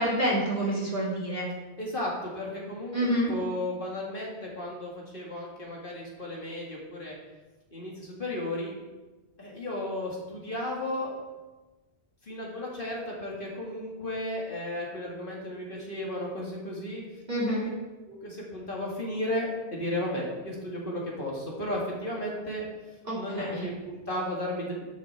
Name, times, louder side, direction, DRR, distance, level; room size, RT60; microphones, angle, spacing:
voice 1, 0.0-1.5 2.9-3.3 17.3-17.6 23.0-23.6, equal, 35° right, -7 dB, 2.8 m, -28 dB
voice 2, 1.8-2.9 3.3-7.1 7.7-8.7 9.4-11.2 12.2-17.0 17.6-17.7 18.1-22.6 23.1-24.9, left 1 dB, 45° left, -3 dB, 2.1 m, -34 dB
11.0 x 6.3 x 4.3 m, 1.2 s
omnidirectional pair, 1.2 m